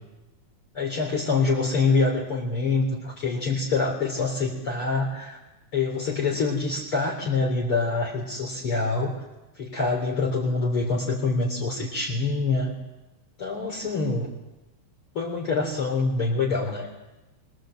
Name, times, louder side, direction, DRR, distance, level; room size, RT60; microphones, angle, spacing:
voice 1, 0.7-5.4 5.7-9.2 9.6-12.7 13.4-14.3 15.1-16.9, left 3 dB, 45° left, 0 dB, 4.4 m, -25 dB
29.0 x 25.0 x 7.8 m, 1.0 s
omnidirectional pair, 3.3 m